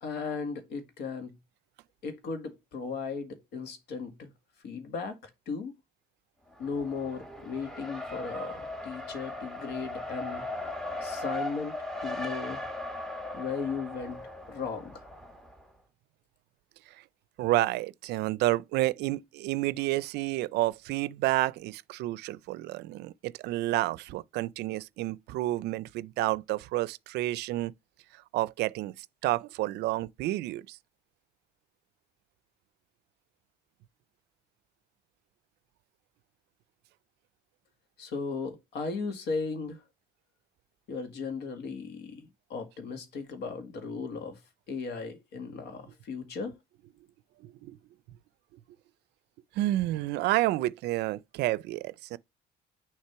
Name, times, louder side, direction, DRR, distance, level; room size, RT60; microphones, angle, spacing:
voice 1, 0.0-1.4 2.0-4.3 4.6-5.2 5.5-5.7 6.6-10.5 11.0-12.6 13.3-14.2 14.5-15.0 38.0-39.8 40.9-44.4 44.7-46.5, left 5 dB, 75° left, 1.8 m, -36 dB
Race car auto racing, 6.5-15.6, left 1 dB, 5° left, 1.0 m, -38 dB
voice 2, 17.4-27.7 28.3-30.8 47.4-47.8 49.6-52.2, right 17 dB, 80° right, 0.4 m, -30 dB
6.6 x 3.2 x 4.5 m
cardioid pair, 110°, 17 cm